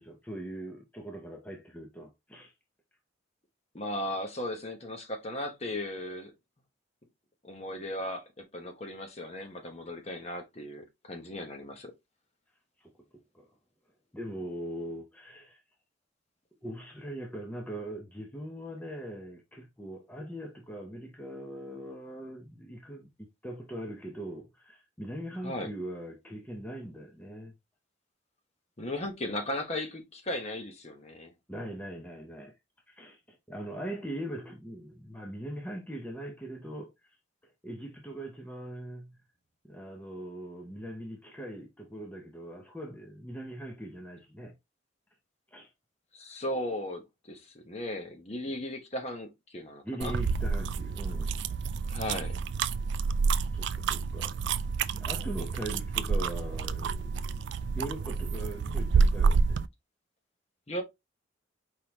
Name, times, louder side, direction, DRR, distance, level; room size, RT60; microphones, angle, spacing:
voice 1, 0.0-2.5 12.8-12.9 13.3-13.5 14.1-15.6 16.6-23.1 23.4-27.5 31.5-32.5 32.9-36.9 37.6-39.2 39.6-44.5 45.5-45.7 49.8-51.4 53.5-54.4 54.9-57.4 57.7-59.6, right 1 dB, 10° left, 0.7 m, -41 dB
voice 2, 3.7-6.3 7.4-11.9 25.4-25.7 28.8-31.3 46.1-50.1 51.9-52.4 60.7-60.8, left 1 dB, 35° left, 1.0 m, -36 dB
sound 1, 50.0-59.7, right 5 dB, 65° right, 0.3 m, -29 dB
4.8 x 3.8 x 2.9 m
head